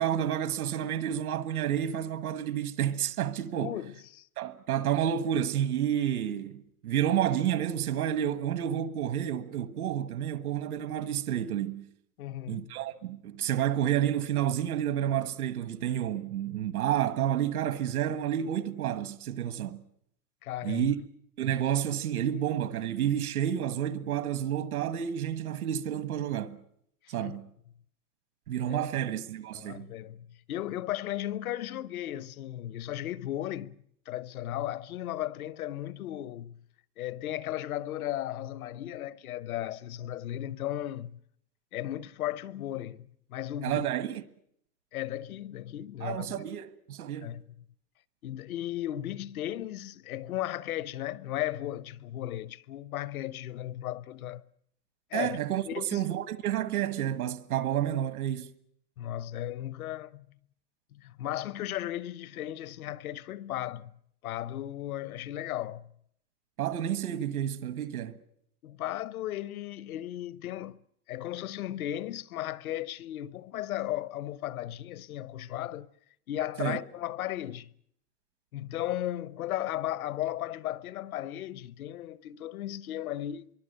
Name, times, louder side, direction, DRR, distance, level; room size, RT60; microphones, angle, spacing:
voice 1, 0.0-3.8 4.4-11.8 12.5-19.8 20.6-21.0 21.4-26.6 27.1-27.5 28.5-29.9 43.6-44.2 46.0-47.3 55.1-58.5 66.6-68.2 76.6-76.8, right 10 dB, 75° right, 1.5 m, -30 dB
voice 2, 3.6-4.3 12.2-12.8 20.4-20.9 27.0-27.4 28.7-29.0 29.5-33.8 34.1-36.6 37.0-41.2 41.7-43.8 44.9-46.4 47.2-47.4 48.2-54.5 55.1-55.4 55.7-56.0 59.0-60.3 60.9-63.9 64.2-65.9 68.6-70.8 71.1-75.9 76.3-77.7 78.5-83.5, left 13 dB, 75° left, 1.0 m, -35 dB
25.5 x 23.5 x 6.7 m
supercardioid pair, 175°, 44 cm